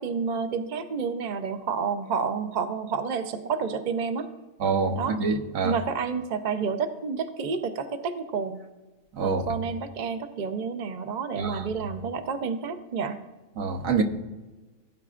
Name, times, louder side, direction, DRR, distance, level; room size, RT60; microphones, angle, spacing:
voice 1, 0.0-4.3 4.9-5.1 5.6-8.6 9.2-13.2, right 5 dB, 45° right, 0.6 m, -29 dB
voice 2, 4.6-5.7 9.1-9.4 11.4-11.7 13.6-14.0, right 4 dB, 70° right, 1.3 m, -26 dB
17.0 x 9.2 x 2.5 m
omnidirectional pair, 1.5 m